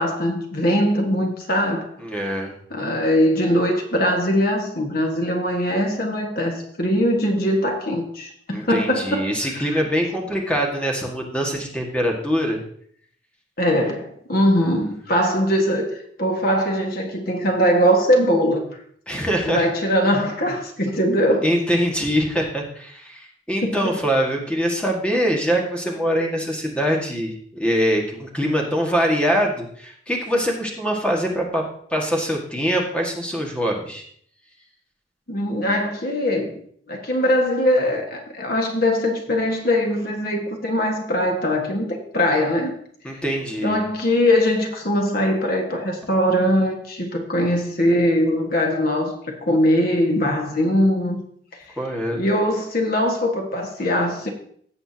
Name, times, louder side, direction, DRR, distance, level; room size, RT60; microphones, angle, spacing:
voice 1, 0.0-1.9 2.7-9.7 13.6-18.7 19.1-19.2 19.4-21.5 23.6-24.0 35.3-36.6 36.9-42.8 43.6-51.2 52.1-54.3, equal, 55° left, 1.7 m, -21 dB
voice 2, 2.0-2.5 8.5-12.6 14.6-14.7 19.1-19.6 21.4-31.6 31.9-34.0 43.0-43.8 51.8-52.2, equal, 5° left, 1.8 m, -23 dB
16.5 x 7.0 x 2.8 m
head